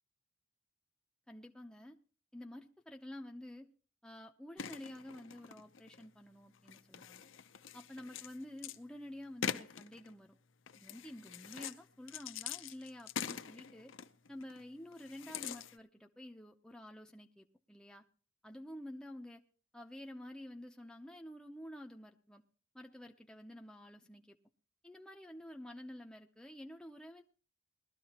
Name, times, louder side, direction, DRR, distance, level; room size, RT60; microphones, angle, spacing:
voice 1, 1.3-2.0 2.3-3.7 4.0-7.3 7.7-10.4 10.8-13.9 14.3-18.0 18.4-19.4 19.7-22.4 22.7-24.4 24.8-27.2, left 1 dB, 5° left, 2 dB, 0.6 m, -50 dB
sound 1, 4.6-6.1 6.5-8.8 9.4-10.1 10.7-11.8 12.1-14.6 14.9-15.8, left 8 dB, 65° left, 0.7 m, -44 dB
20.5 x 13.0 x 2.9 m, 0.40 s
head